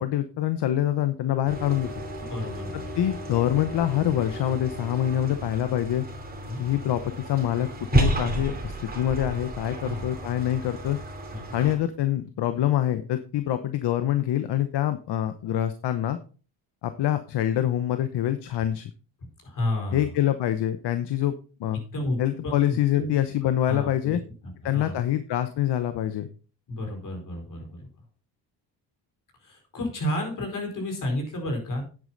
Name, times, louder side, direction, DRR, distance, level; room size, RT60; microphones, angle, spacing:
voice 1, 0.0-1.9 3.0-6.0 6.6-11.0 11.5-16.2 16.8-18.9 19.9-21.3 21.6-21.8 22.2-24.2 24.6-26.3, left 12 dB, 70° left, 10 dB, 1.0 m, -25 dB
sound 1, 1.5-11.8, right 2 dB, 20° right, 2.6 m, -32 dB
voice 2, 2.3-2.9 6.5-6.6 9.8-10.1 11.3-11.6 19.4-20.1 21.7-22.2 22.4-22.5 22.9-23.2 23.7-25.0 26.7-27.9 29.4-31.9, left 1 dB, 45° left, 2 dB, 4.9 m, -31 dB
9.7 x 8.7 x 4.0 m, 0.37 s
cardioid pair, 110°, 43 cm